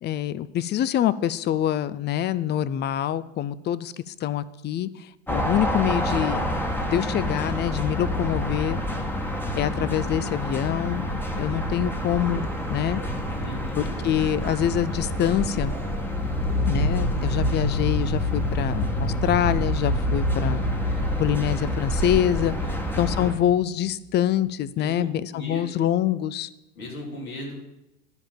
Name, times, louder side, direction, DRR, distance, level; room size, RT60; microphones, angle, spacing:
voice 1, 0.0-6.5 6.9-8.8 9.6-13.0 13.8-15.7 16.7-20.6 21.2-22.5 23.0-26.5, left 11 dB, 25° left, 17 dB, 0.4 m, -25 dB
sound 1, 5.3-23.3, equal, 5° left, 1.3 m, -29 dB
sound 2, 12.2-17.5, right 4 dB, 60° right, 2.3 m, -42 dB
voice 2, 13.4-14.0 22.6-23.3 24.8-25.9 26.8-27.6, left 1 dB, 85° left, -3 dB, 3.5 m, -37 dB
sound 3, 16.0-23.3, left 1 dB, 40° left, 2.6 m, -27 dB
10.5 x 5.0 x 7.3 m, 0.94 s
hypercardioid pair, 80°, 41 cm